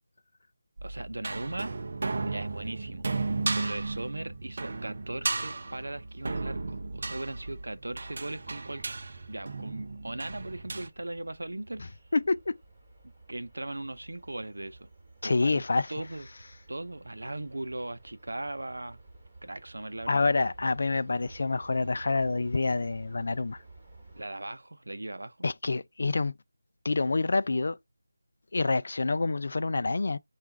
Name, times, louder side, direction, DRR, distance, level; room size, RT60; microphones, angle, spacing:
sound 1, 0.8-10.9, right 3 dB, 45° right, 0.5 m, -35 dB
voice 1, 0.8-1.8 2.2-3.1 3.5-8.8 9.3-12.0 13.3-14.9 15.2-15.6 15.9-16.3 16.7-19.0 19.4-20.3 24.1-25.5, right 2 dB, 90° right, 0.6 m, -38 dB
sound 2, 6.0-24.2, right 2 dB, 15° right, 2.0 m, -53 dB
voice 2, 12.1-12.6 15.2-15.9 20.1-23.6 25.4-26.3 26.8-27.8 28.5-30.2, left 3 dB, 50° left, 0.3 m, -27 dB
4.7 x 2.4 x 4.6 m
figure-of-eight pair, 175°, 0 cm